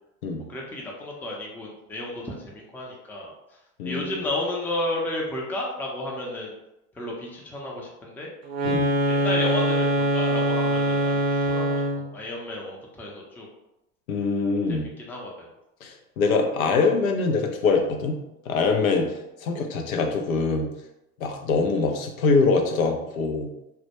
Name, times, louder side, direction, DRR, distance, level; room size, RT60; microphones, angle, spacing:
voice 1, 0.5-3.3 3.8-6.5 6.9-8.3 9.1-13.5 14.7-15.5, left 1 dB, 5° left, -2 dB, 0.4 m, -32 dB
voice 2, 3.8-4.1 8.6-8.9 14.1-14.9 15.8-18.1 18.5-19.1 19.4-20.7 21.2-23.5, left 4 dB, 90° left, 3 dB, 0.5 m, -23 dB
sound 1, 8.5-12.1, right 1 dB, 40° right, 0.7 m, -23 dB
2.1 x 2.1 x 2.8 m, 0.91 s
hypercardioid pair, 80°, 40 cm